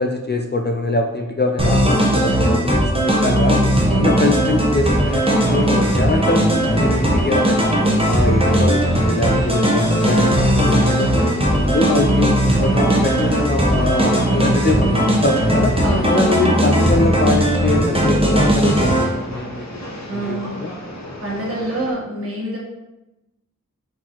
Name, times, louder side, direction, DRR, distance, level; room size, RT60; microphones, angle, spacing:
voice 1, 0.0-3.6 3.9-7.7 8.0-15.8 16.0-19.8 20.1-20.7, left 2 dB, 30° left, 3 dB, 0.4 m, -23 dB
sound 1, 1.6-19.0, right 1 dB, 15° right, 0.9 m, -17 dB
voice 2, 3.8-4.1 15.8-16.2 20.1-20.5 21.2-22.6, right 1 dB, 45° right, -5 dB, 1.5 m, -26 dB
Train, 4.8-21.9, left 1 dB, 55° left, 1.0 m, -34 dB
4.3 x 3.9 x 2.9 m, 0.98 s
wide cardioid pair, 50°, 33 cm